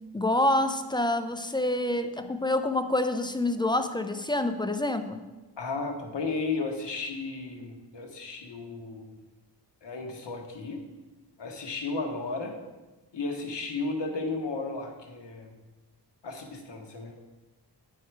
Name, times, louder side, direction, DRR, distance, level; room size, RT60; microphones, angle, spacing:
voice 1, 0.1-5.3, left 1 dB, 10° left, 8 dB, 0.3 m, -27 dB
voice 2, 5.6-9.2 9.8-10.8 11.4-12.5 13.1-15.5 16.2-17.1, left 3 dB, 75° left, 3 dB, 1.2 m, -34 dB
9.2 x 4.8 x 4.6 m, 1.2 s
wide cardioid pair, 120°, 42 cm